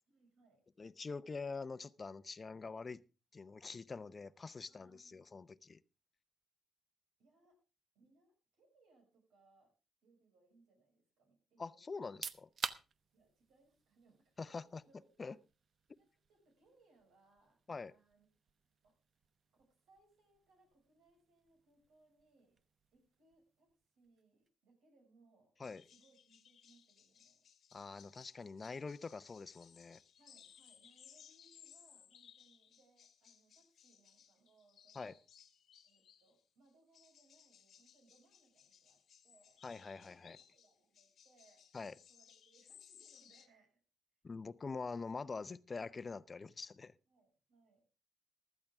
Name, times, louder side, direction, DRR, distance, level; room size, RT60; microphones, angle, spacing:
voice 1, 0.1-0.6 4.7-5.5 7.2-7.6 7.9-9.7 10.0-12.1 13.1-15.4 16.0-17.6 17.9-18.3 18.8-18.9 19.6-22.6 22.9-25.5 25.9-27.5 30.2-35.2 35.8-41.7 42.1-43.7 47.1-47.8, right 3 dB, 90° right, 6.3 m, -71 dB
voice 2, 0.8-3.0 3.3-5.8 11.6-12.5 14.4-14.8 15.2-15.4 17.7-17.9 25.6-25.8 27.7-30.0 35.0-35.1 39.6-40.4 41.7-41.9 44.2-46.9, left 4 dB, 35° left, 0.7 m, -45 dB
sound 1, 12.0-24.6, right 6 dB, 55° right, 0.8 m, -52 dB
sound 2, 25.6-36.4 36.9-43.5, left 8 dB, 70° left, 1.4 m, -63 dB
15.5 x 12.0 x 3.6 m
cardioid pair, 70°, 0 cm